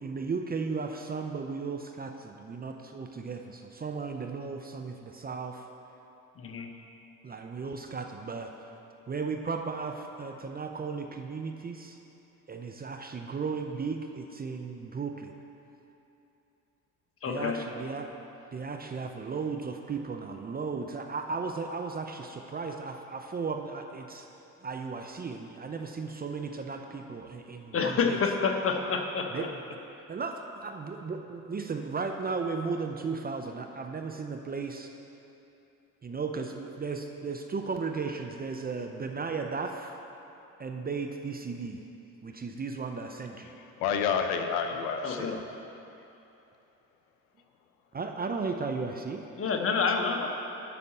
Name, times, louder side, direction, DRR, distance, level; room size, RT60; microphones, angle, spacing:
voice 1, 0.0-5.6 7.2-8.5 9.1-12.0 12.5-15.3 17.3-18.1 18.5-24.2 24.6-28.2 29.3-29.5 30.1-34.9 36.0-40.0 40.6-41.8 42.2-43.5 45.2-45.3 47.9-49.2, right 4 dB, 20° right, 4 dB, 0.6 m, -35 dB
voice 2, 6.4-6.7 17.2-17.6 27.7-29.5 45.0-45.4 49.4-50.3, left 5 dB, 30° left, 3 dB, 1.1 m, -28 dB
voice 3, 43.4-45.4, left 6 dB, 60° left, 6 dB, 0.8 m, -30 dB
12.0 x 4.2 x 7.5 m, 2.9 s
figure-of-eight pair, 55°, 44 cm